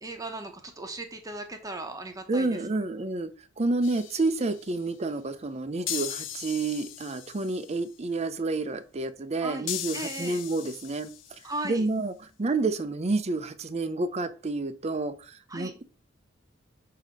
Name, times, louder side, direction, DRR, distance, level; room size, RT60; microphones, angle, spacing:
voice 1, 0.0-2.6 9.4-10.4 11.4-11.9 15.5-15.8, right 2 dB, 20° right, 1.0 m, -37 dB
voice 2, 2.3-3.3 3.6-11.1 11.6-15.8, right 3 dB, 35° right, 0.6 m, -29 dB
sound 1, 3.8-4.7 5.9-7.8 9.7-11.6, left 11 dB, 85° left, 0.6 m, -38 dB
8.2 x 2.9 x 5.1 m
head